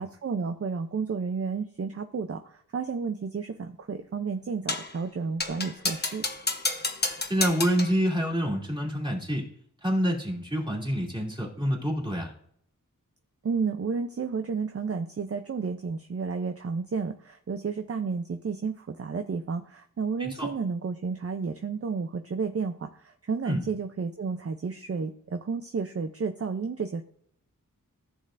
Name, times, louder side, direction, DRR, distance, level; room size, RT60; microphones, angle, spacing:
voice 1, 0.0-6.3 13.4-27.0, right 5 dB, 45° right, 7 dB, 0.5 m, -32 dB
sound 1, 4.7-5.0 5.4-8.0, left 2 dB, 30° left, 1.0 m, -30 dB
voice 2, 7.3-9.5 9.8-12.3 20.2-20.5 23.5-23.6, equal, 15° right, -2 dB, 2.6 m, -27 dB
14.0 x 6.6 x 2.5 m, 0.67 s
wide cardioid pair, 70°, 33 cm